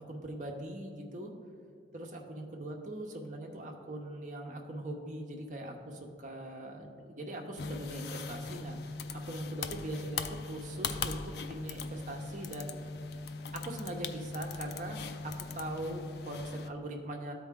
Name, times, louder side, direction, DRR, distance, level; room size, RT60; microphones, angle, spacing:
voice 1, 0.1-1.3 1.9-8.8 9.1-12.7 13.5-17.3, right 1 dB, 40° right, 2 dB, 0.8 m, -41 dB
sound 1, 7.6-16.7, left 4 dB, 55° left, 0.4 m, -40 dB
13.0 x 4.6 x 3.6 m, 2.3 s
head